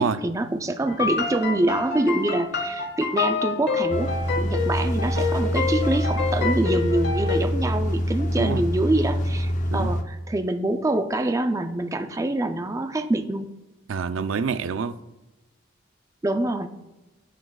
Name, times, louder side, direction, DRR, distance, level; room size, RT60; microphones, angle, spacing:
voice 1, 0.0-13.5 16.2-16.7, right 2 dB, 15° right, 0.4 m, -25 dB
sound 1, 0.9-7.4, left 4 dB, 55° left, 1.2 m, -27 dB
sound 2, 3.9-10.0, equal, 40° left, 0.6 m, -25 dB
voice 2, 13.9-15.0, right 5 dB, 80° right, 0.4 m, -26 dB
13.5 x 6.3 x 2.3 m
head